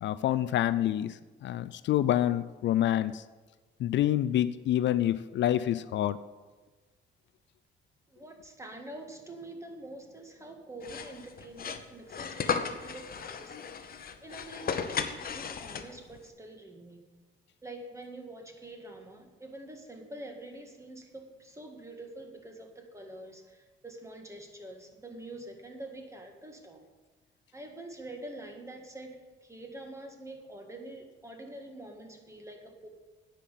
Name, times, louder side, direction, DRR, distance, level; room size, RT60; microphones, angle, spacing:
voice 1, 0.0-3.2 3.8-6.2, left 12 dB, 65° left, 15 dB, 0.4 m, -27 dB
voice 2, 8.1-13.7 14.2-17.0 17.6-26.8 27.5-32.9, right 1 dB, 15° right, 3 dB, 1.9 m, -46 dB
sound 1, 10.8-16.2, left 6 dB, 50° left, 0.9 m, -35 dB
9.9 x 5.7 x 8.5 m, 1.3 s
cardioid pair, 90°, 20 cm